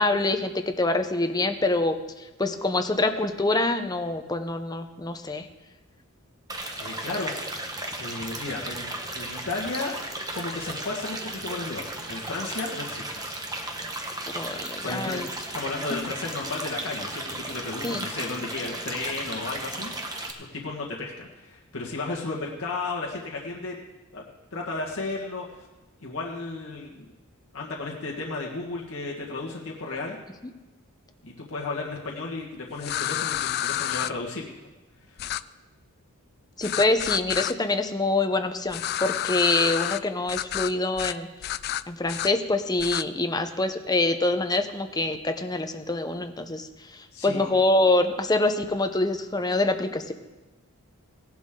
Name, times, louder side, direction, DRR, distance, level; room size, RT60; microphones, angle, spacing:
voice 1, 0.0-2.0 2.4-5.5 14.3-15.3 17.8-18.1 36.6-41.3 41.9-50.1, left 2 dB, 20° left, 7 dB, 0.8 m, -25 dB
sound 1, 6.5-20.3, right 2 dB, 15° right, 1.1 m, -35 dB
voice 2, 6.8-7.3 8.0-10.0 10.3-13.4 14.8-20.2 20.5-23.7 24.1-24.3 24.5-25.7 26.0-27.1 27.5-30.2 31.2-34.4 35.0-35.3 36.7-36.8 47.1-47.4, left 3 dB, 65° left, -3 dB, 1.7 m, -34 dB
sound 2, 32.8-34.1 35.2-35.4 36.6-37.5 38.7-40.0 40.3-40.7 41.0-41.2 41.4-42.3 42.8-43.0, left 12 dB, 45° left, 0.3 m, -29 dB
17.0 x 11.5 x 3.8 m, 1.1 s
head